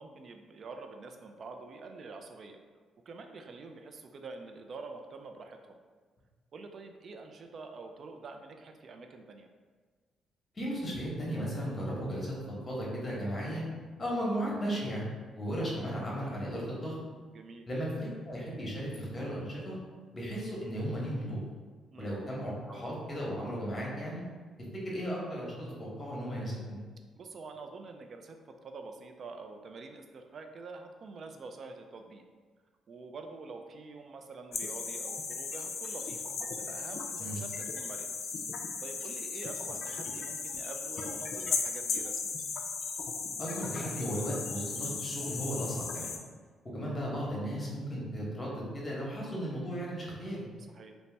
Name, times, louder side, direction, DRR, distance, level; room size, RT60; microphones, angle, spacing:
voice 1, 0.0-2.6 3.1-5.8 6.5-9.5 17.3-17.6 21.9-22.2 27.2-28.4 28.6-32.2 32.9-38.2 38.8-42.4 50.7-50.9, right 3 dB, 50° right, 5 dB, 0.3 m, -46 dB
voice 2, 10.5-12.3 12.7-13.6 14.0-15.1 15.3-16.9 17.7-19.8 20.1-21.4 22.0-24.3 24.8-26.8 37.2-37.4 43.4-46.2 46.7-50.5, equal, 30° left, -4 dB, 0.9 m, -35 dB
sound 1, 34.5-46.2, left 5 dB, 60° left, 0.3 m, -36 dB
2.7 x 2.0 x 3.2 m, 1.4 s
cardioid pair, 90°, 0 cm